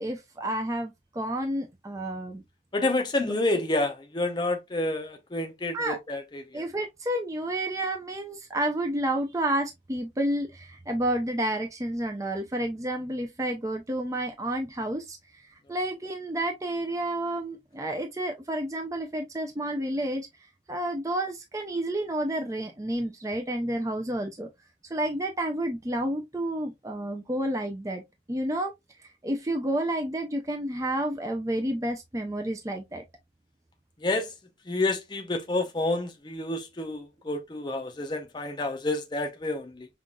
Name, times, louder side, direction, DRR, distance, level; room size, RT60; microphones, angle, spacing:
voice 1, 0.0-2.4 3.2-3.3 5.7-6.0 6.5-15.2 15.7-20.3 20.7-24.5 24.9-28.0 28.3-28.7 29.2-33.0, right 1 dB, 20° right, 0.6 m, -30 dB
voice 2, 2.7-6.6 34.0-34.3 34.7-39.9, left 2 dB, 25° left, 0.7 m, -29 dB
5.5 x 2.5 x 2.3 m
head